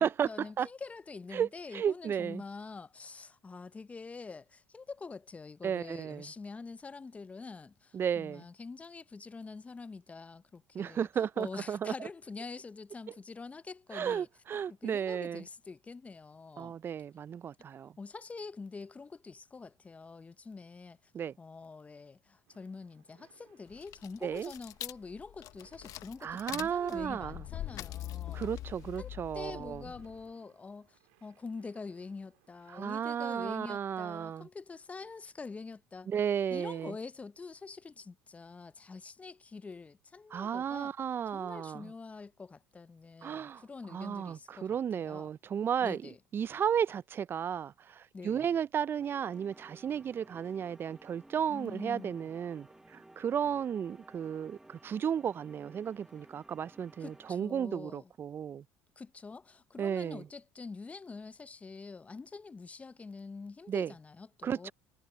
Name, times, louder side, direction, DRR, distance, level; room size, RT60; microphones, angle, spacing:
voice 1, 0.0-11.1 11.4-14.3 14.7-16.8 18.0-21.1 21.4-28.5 29.0-36.1 36.5-40.9 41.3-45.3 45.8-46.2 48.1-48.5 51.5-52.3 57.0-58.1 59.0-64.7, left 4 dB, 20° left, 0.6 m, -46 dB
voice 2, 1.3-2.4 5.6-6.3 7.9-8.4 10.7-11.9 13.9-15.4 16.6-17.9 21.1-21.3 24.2-24.5 26.2-27.4 28.3-29.8 32.7-34.5 36.1-36.9 40.3-41.9 43.2-43.6 43.9-46.0 46.3-58.6 59.8-60.2 63.7-63.9 64.4-64.7, right 8 dB, 30° right, 0.3 m, -34 dB
sound 1, 22.5-33.0, right 23 dB, 80° right, 2.1 m, -69 dB
sound 2, 23.7-30.2, left 13 dB, 55° left, 0.8 m, -43 dB
sound 3, 49.0-57.4, right 1 dB, 5° right, 0.9 m, -57 dB
supercardioid pair, 90°, 7 cm